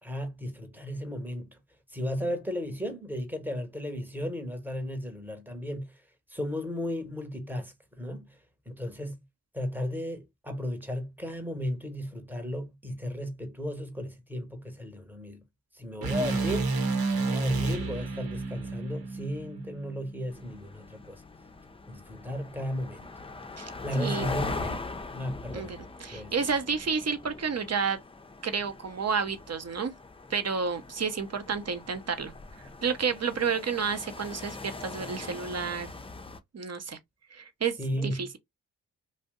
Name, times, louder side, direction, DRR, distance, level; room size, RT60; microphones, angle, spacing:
voice 1, 0.0-1.6 1.9-5.9 6.3-8.4 8.7-9.2 9.5-15.4 15.7-16.8 17.1-21.2 21.9-23.1 23.8-24.8 25.1-25.8 26.1-26.3 37.8-38.3, equal, 5° right, 1.0 m, -35 dB
sound 1, 16.0-20.2, right 3 dB, 70° right, 0.9 m, -30 dB
sound 2, 20.3-36.4, left 3 dB, 15° left, 0.5 m, -41 dB
voice 2, 24.0-24.3 25.5-28.0 28.4-29.9 30.3-32.3 32.6-35.9 36.5-37.0 37.3-37.7 38.0-38.4, right 5 dB, 40° right, 0.8 m, -30 dB
2.5 x 2.1 x 3.6 m
supercardioid pair, 40°, 38 cm